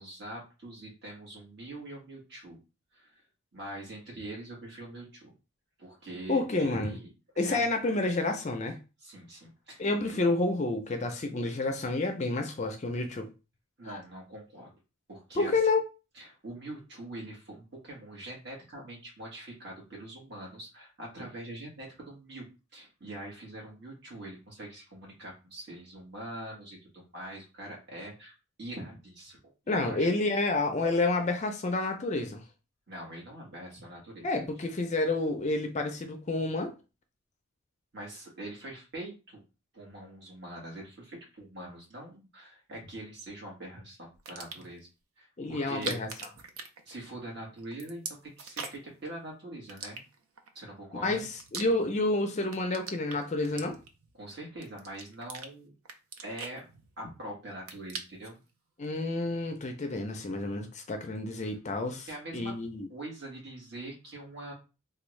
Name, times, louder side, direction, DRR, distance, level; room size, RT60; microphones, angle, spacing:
voice 1, 0.0-2.6 2.9-3.2 3.5-5.3 5.8-7.1 7.4-7.7 9.0-10.2 13.8-14.7 15.1-15.6 16.2-22.5 22.7-30.1 32.9-34.4 37.9-39.4 39.7-44.9 45.2-46.0 46.8-50.0 50.5-51.3 54.1-55.7 56.2-56.7 57.0-58.4 61.4-61.5 62.1-62.5 62.9-64.5, right 1 dB, 50° right, 1.5 m, -43 dB
voice 2, 6.3-6.9 7.4-8.8 9.8-13.3 13.9-14.0 15.4-15.8 29.7-32.4 34.2-36.7 45.4-46.1 51.0-53.8 58.8-62.1 62.3-62.9, left 2 dB, 30° left, 0.4 m, -29 dB
sound 1, 44.1-44.8 45.6-47.3 47.6-49.0 49.7-50.5 51.0-52.1 52.4-54.1 54.6-55.5 55.8-57.2 57.5-58.4, right 5 dB, 75° right, 0.5 m, -42 dB
3.4 x 2.3 x 3.1 m
head